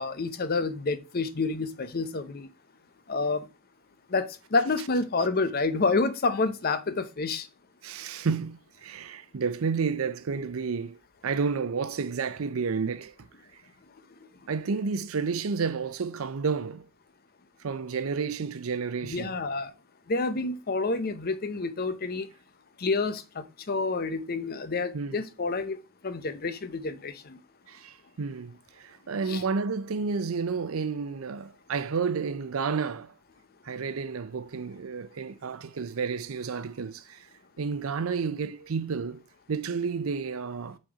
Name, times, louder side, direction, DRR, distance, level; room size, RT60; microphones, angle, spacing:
voice 1, 0.0-2.5 3.1-3.5 4.1-7.5 19.0-19.7 20.1-22.3 22.8-25.8 26.0-27.4 29.3-29.4, left 3 dB, 45° left, 0.7 m, -28 dB
voice 2, 7.8-11.0 11.2-13.1 14.5-16.8 17.6-19.4 24.9-25.2 27.7-33.1 33.6-37.3 37.6-39.2 39.5-40.8, right 5 dB, 90° right, 0.6 m, -31 dB
6.3 x 4.2 x 4.9 m
head